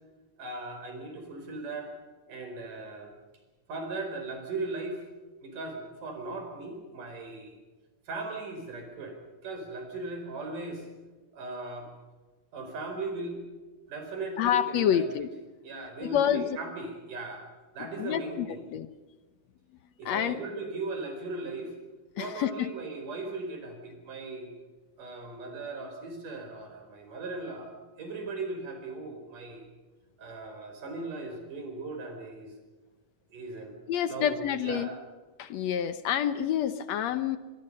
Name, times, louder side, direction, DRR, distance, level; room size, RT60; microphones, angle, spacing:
voice 1, 0.4-1.9 2.3-3.1 3.7-5.1 5.4-7.6 8.1-9.2 9.4-10.9 11.3-11.9 12.5-13.4 13.9-15.1 15.6-18.6 20.0-21.8 22.2-24.5 25.0-27.7 28.0-29.7 30.2-32.5 33.3-33.8 34.1-35.0, right 3 dB, 90° right, 4 dB, 6.3 m, -38 dB
voice 2, 14.4-15.3 16.0-16.6 18.0-18.9 20.1-20.4 22.2-22.7 33.9-34.9 35.4-37.4, left 10 dB, 70° left, 11 dB, 2.0 m, -28 dB
25.5 x 21.5 x 5.5 m, 1.3 s
omnidirectional pair, 3.6 m